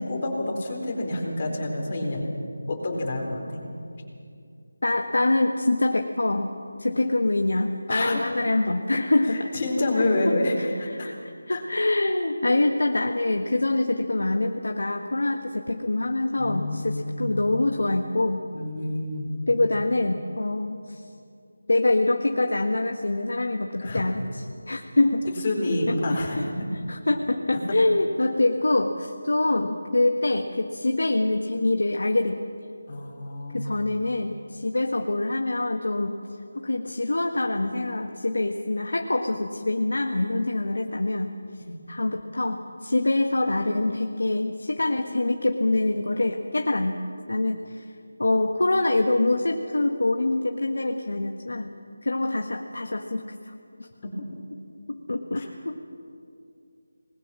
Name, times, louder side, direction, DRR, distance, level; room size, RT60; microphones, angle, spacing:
voice 1, 0.0-2.3 2.7-3.6 7.9-8.2 9.2-11.1 11.5-11.6 16.4-17.5 18.5-19.3 23.8-24.0 25.4-26.4 28.2-28.3 32.9-33.8 41.6-41.8 55.3-55.5, left 2 dB, 30° left, 0 dB, 4.2 m, -28 dB
voice 2, 4.8-6.5 6.8-9.5 10.0-18.4 19.5-21.0 21.7-25.5 26.1-26.5 26.9-32.5 33.5-36.1 36.5-41.3 41.9-47.0 47.3-47.9 48.2-51.7 52.0-53.9 54.9-55.9, left 2 dB, 75° left, 3 dB, 1.6 m, -25 dB
26.5 x 20.5 x 6.3 m, 2.4 s
figure-of-eight pair, 175°, 0 cm